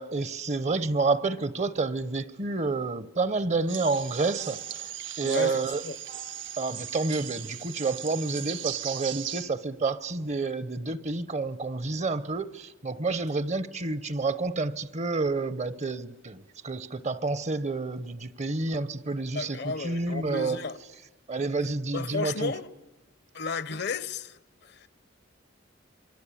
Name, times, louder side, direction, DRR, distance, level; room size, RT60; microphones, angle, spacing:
voice 1, 0.0-4.9 5.2-5.8 6.6-20.6 21.3-22.5, right 3 dB, 35° right, 0.8 m, -29 dB
sound 1, 3.7-9.4, right 11 dB, 75° right, 1.2 m, -38 dB
voice 2, 5.2-6.0 19.3-20.8 21.9-22.7 23.3-24.9, left 4 dB, 60° left, 0.9 m, -33 dB
27.0 x 23.0 x 8.5 m
head